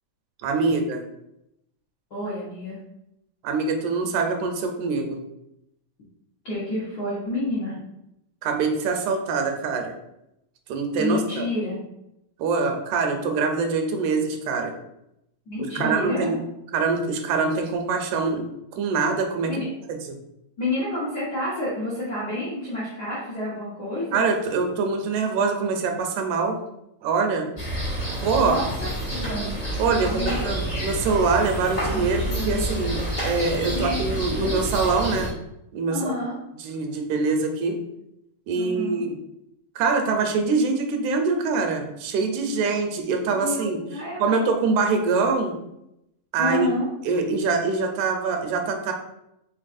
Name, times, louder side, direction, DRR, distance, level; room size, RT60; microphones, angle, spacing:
voice 1, 0.4-1.0 3.4-5.2 8.4-9.9 10.7-11.5 12.4-14.7 15.8-16.4 16.7-18.4 18.7-19.5 19.9-20.2 24.1-26.6 27.0-27.5 28.2-28.6 29.8-35.4 35.7-36.2 36.6-37.8 38.5-39.1 39.8-43.8 44.2-45.6 46.3-46.7 47.1-48.9, right 4 dB, 85° right, 4 dB, 2.0 m, -24 dB
voice 2, 2.1-2.8 6.4-7.8 11.0-11.8 15.5-16.3 19.5-19.6 20.6-24.2 28.1-28.9 30.0-30.5 33.7-34.2 35.9-36.4 38.5-39.1 42.5-42.6 43.3-44.5 46.4-46.9, left 1 dB, 80° left, -8 dB, 0.9 m, -29 dB
sound 1, 27.6-35.3, right 1 dB, 55° left, 0.5 m, -28 dB
4.6 x 3.9 x 2.5 m, 0.84 s
omnidirectional pair, 3.4 m